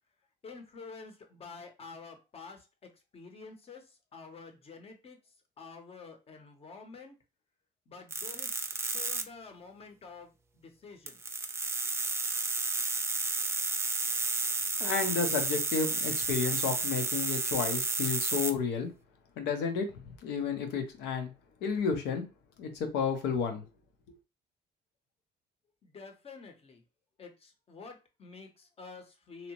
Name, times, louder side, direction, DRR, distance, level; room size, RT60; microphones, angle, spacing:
voice 1, 0.4-3.8 4.1-5.2 5.6-7.1 7.9-11.2 25.8-26.8 27.2-29.5, left 4 dB, 35° left, 5 dB, 0.7 m, -49 dB
sound 1, 8.1-9.2 11.1-18.5, right 3 dB, 15° right, 0.3 m, -32 dB
voice 2, 14.8-18.9 19.4-21.3 21.6-22.2 22.6-23.6, left 6 dB, 90° left, 7 dB, 0.7 m, -31 dB
2.7 x 2.1 x 2.9 m, 0.28 s
cardioid pair, 110°, 17 cm